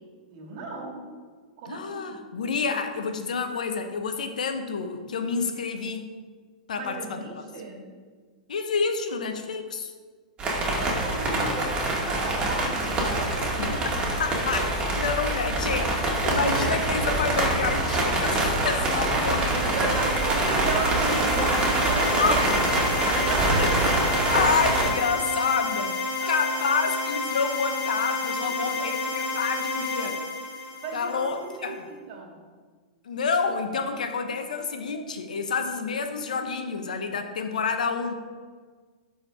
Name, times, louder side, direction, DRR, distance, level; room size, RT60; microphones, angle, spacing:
voice 1, 0.3-1.0 1.6-2.2 6.8-7.9 10.7-13.3 16.6-16.8 19.6-23.9 26.2-26.3 28.6-28.7 30.5-32.4, right 4 dB, 55° right, 0 dB, 2.1 m, -35 dB
voice 2, 1.7-6.1 6.7-7.3 8.5-9.9 13.6-13.8 14.2-20.0 22.2-22.5 23.1-23.2 23.6-23.8 24.3-30.2 30.9-31.8 33.0-38.1, left 5 dB, 75° left, 7 dB, 0.9 m, -28 dB
sound 1, 10.4-24.9, right 2 dB, 25° right, 2.1 m, -25 dB
sound 2, 18.8-31.5, left 3 dB, 40° left, 1.6 m, -31 dB
12.0 x 4.4 x 3.6 m, 1.5 s
hypercardioid pair, 105°, 4 cm